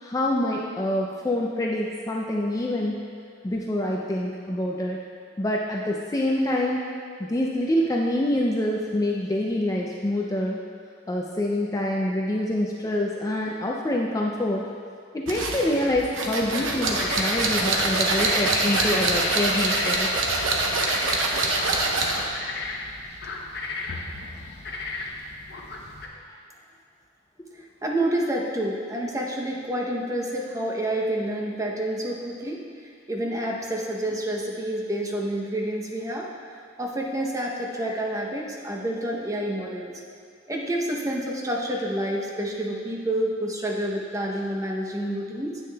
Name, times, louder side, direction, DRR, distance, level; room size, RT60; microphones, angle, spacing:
voice 1, 0.0-3.0 3.4-5.0 5.4-6.8 7.2-10.6 11.1-14.6 15.1-20.1, left 1 dB, 15° left, -2 dB, 0.4 m, -26 dB
sound 1, 15.3-22.3, right 2 dB, 90° right, 0.9 m, -25 dB
sound 2, 16.6-26.1, left 3 dB, 55° left, 0.7 m, -33 dB
voice 2, 27.5-36.3 36.8-40.0 40.5-45.6, right 1 dB, 15° right, -1 dB, 0.7 m, -28 dB
9.8 x 8.4 x 2.2 m, 2.2 s
head